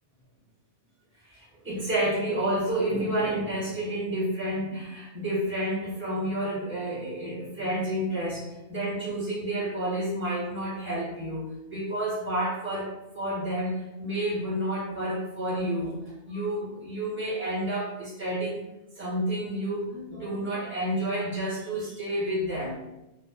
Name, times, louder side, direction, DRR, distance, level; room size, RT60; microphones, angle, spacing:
voice 1, 1.3-18.6 19.0-22.8, right 1 dB, 10° right, -10 dB, 1.2 m, -30 dB
2.3 x 2.3 x 2.4 m, 0.95 s
omnidirectional pair, 1.2 m